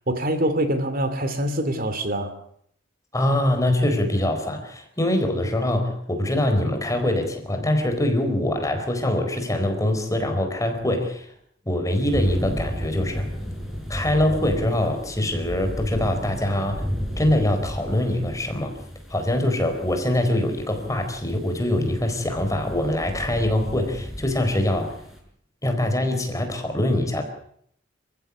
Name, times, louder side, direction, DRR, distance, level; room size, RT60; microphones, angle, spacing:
voice 1, 0.1-2.3, right 1 dB, 45° right, 9 dB, 2.6 m, -24 dB
voice 2, 3.1-11.3 11.7-13.3 13.9-16.9 17.2-18.8 19.1-25.0 25.6-27.2, left 1 dB, 15° left, 5 dB, 4.3 m, -23 dB
sound 1, 12.0-25.2, equal, ahead, 5.9 m, -33 dB
28.0 x 15.5 x 8.4 m, 0.67 s
head